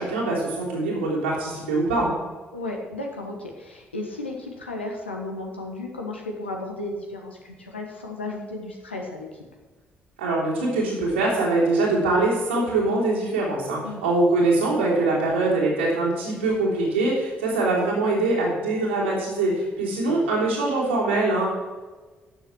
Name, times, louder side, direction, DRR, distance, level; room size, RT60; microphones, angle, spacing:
voice 1, 0.0-2.1 10.2-21.5, right 2 dB, 80° right, -5 dB, 3.2 m, -23 dB
voice 2, 2.5-9.4 13.8-14.0 20.0-20.2, left 2 dB, 85° left, 1 dB, 1.4 m, -34 dB
12.0 x 7.2 x 6.2 m, 1.3 s
figure-of-eight pair, 45°, 6 cm